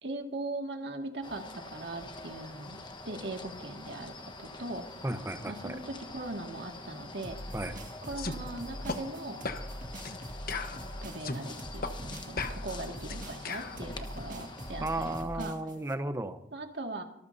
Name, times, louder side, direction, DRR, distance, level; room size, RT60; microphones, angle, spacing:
voice 1, 0.0-5.0 5.5-7.4 8.1-9.4 10.7-15.5 16.5-17.0, right 2 dB, 65° right, 3 dB, 2.1 m, -40 dB
sound 1, 1.2-15.2, left 2 dB, 25° left, 1.2 m, -46 dB
voice 2, 5.0-5.7 7.5-7.8 14.8-16.4, right 1 dB, 15° right, 8 dB, 0.9 m, -34 dB
sound 2, 7.2-15.9, equal, 45° right, 1.9 m, -43 dB
sound 3, 8.2-8.4 8.9-9.0 9.4-9.7 10.0-10.2 10.5-11.4 11.8-12.0 12.4-13.8, left 4 dB, 50° left, 1.1 m, -36 dB
25.0 x 14.0 x 2.8 m, 0.76 s
head